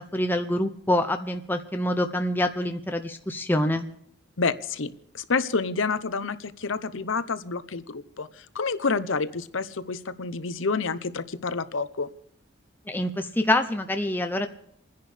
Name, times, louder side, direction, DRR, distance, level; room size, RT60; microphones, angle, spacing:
voice 1, 0.0-3.9 12.9-14.5, left 1 dB, 10° left, 6 dB, 0.6 m, -26 dB
voice 2, 4.4-4.9 5.1-12.1, left 4 dB, 70° left, 13 dB, 0.8 m, -28 dB
30.0 x 10.5 x 3.4 m, 0.74 s
head